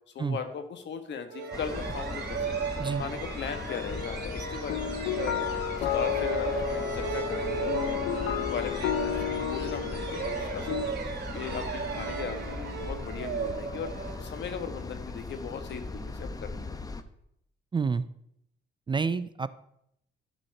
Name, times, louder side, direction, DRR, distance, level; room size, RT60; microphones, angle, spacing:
voice 1, 0.1-2.4 2.9-5.3 5.7-8.0 8.4-13.9 14.2-16.6, left 6 dB, 65° left, 7 dB, 1.4 m, -38 dB
sound 1, 1.3-14.8, right 6 dB, 55° right, 2.5 m, -36 dB
sound 2, 1.5-17.0, left 3 dB, 20° left, 0.7 m, -39 dB
sound 3, 3.7-10.9, left 10 dB, 85° left, 0.8 m, -32 dB
voice 2, 17.7-18.1 18.9-19.5, right 5 dB, 25° right, 14 dB, 0.4 m, -28 dB
12.0 x 4.3 x 6.5 m, 0.76 s
cardioid pair, 90°, 20 cm